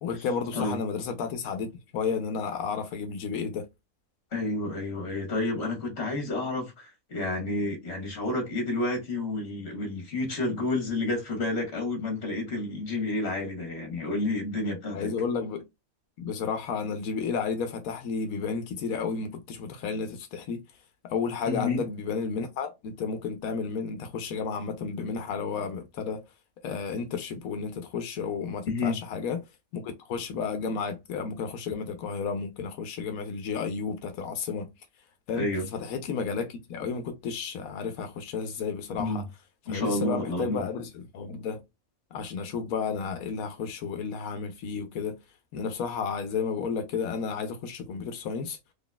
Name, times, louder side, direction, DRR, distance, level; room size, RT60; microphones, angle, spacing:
voice 1, 0.0-3.7 14.9-15.6 16.2-20.6 21.0-26.2 26.6-29.4 29.7-34.7 35.3-39.2 39.7-41.6 42.1-45.2 45.5-48.6, left 5 dB, 85° left, 1.1 m, -32 dB
voice 2, 4.3-15.1 21.4-21.8 28.6-29.0 35.4-35.7 39.0-39.2 39.7-40.6, left 2 dB, 50° left, 1.6 m, -30 dB
3.9 x 3.3 x 2.2 m
omnidirectional pair, 1.4 m